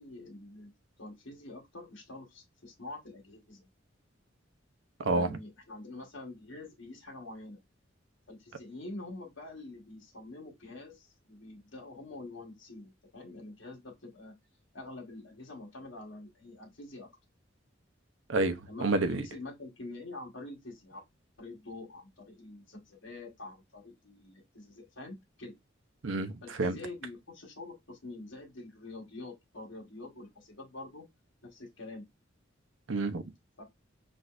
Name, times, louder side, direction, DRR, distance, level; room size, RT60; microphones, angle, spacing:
voice 1, 0.0-3.7 5.1-7.6 8.3-14.3 14.7-17.1 18.7-21.0 21.4-25.6 26.4-31.1 31.4-32.0 33.6-33.7, left 2 dB, 85° left, 1.5 m, -46 dB
voice 2, 5.0-5.4 18.3-19.2 26.0-26.3 26.6-26.8 32.9-33.3, right 2 dB, 75° right, 0.7 m, -29 dB
6.2 x 2.6 x 2.5 m
head